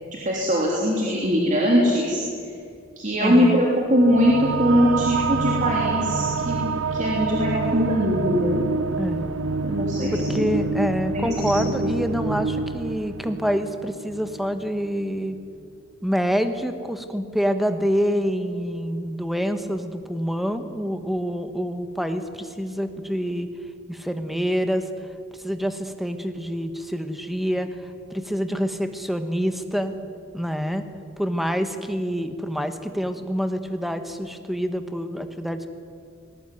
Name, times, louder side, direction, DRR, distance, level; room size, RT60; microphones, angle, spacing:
voice 1, 0.2-2.2 3.0-8.6 9.6-10.5 11.1-11.3 11.6-11.9, equal, 40° right, -3 dB, 3.2 m, -21 dB
voice 2, 3.2-3.7 9.0-9.3 10.1-15.4 16.0-23.5 23.9-24.9 25.4-29.9 30.3-30.8 31.2-35.7, equal, ahead, 8 dB, 1.2 m, -26 dB
sound 1, 3.9-14.8, right 4 dB, 80° right, 0.9 m, -27 dB
20.0 x 18.0 x 9.3 m, 2.4 s
head